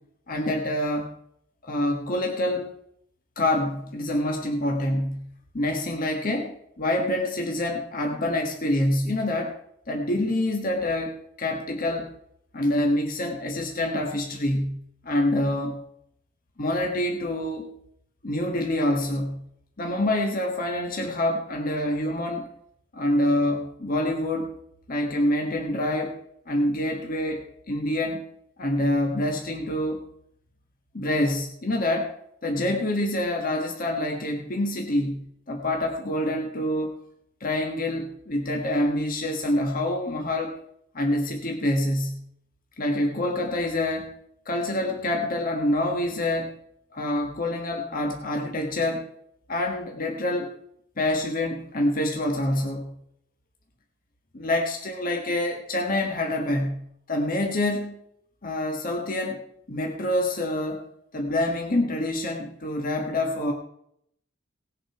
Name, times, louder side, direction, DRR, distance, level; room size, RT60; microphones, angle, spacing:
voice 1, 0.3-1.1 1.6-2.7 3.4-5.3 5.5-9.6 9.9-12.1 12.5-15.8 16.6-17.7 18.2-19.4 19.8-22.5 22.9-24.5 24.9-26.2 26.5-28.2 28.6-30.0 30.9-32.1 32.4-36.9 37.4-40.5 40.9-42.2 42.8-44.1 44.4-46.6 46.9-49.1 49.5-50.5 51.0-52.9 54.3-58.0 58.4-59.4 59.7-60.8 61.1-63.5, left 1 dB, 45° left, 2 dB, 1.5 m, -26 dB
18.5 x 7.6 x 4.8 m, 0.72 s
head